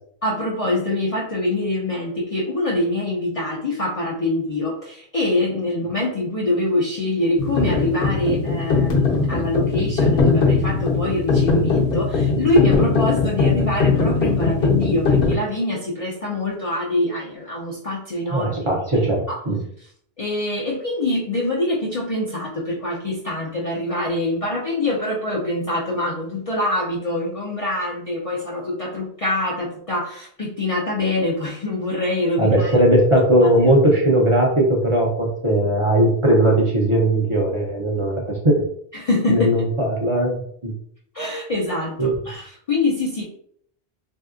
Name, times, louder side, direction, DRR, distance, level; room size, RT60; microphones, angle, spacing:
voice 1, 0.2-18.7 18.9-19.4 19.8-19.9 20.2-32.8 38.9-39.5 41.1-43.2, left 1 dB, 45° left, -4 dB, 0.5 m, -24 dB
sound 1, 7.4-15.4, left 4 dB, 65° left, 1.0 m, -20 dB
voice 2, 18.3-19.6 32.4-38.1 38.4-38.6 39.3-40.7 42.0-42.1, right 1 dB, 35° right, -2 dB, 0.6 m, -18 dB
3.2 x 2.7 x 2.4 m, 0.64 s
omnidirectional pair, 1.1 m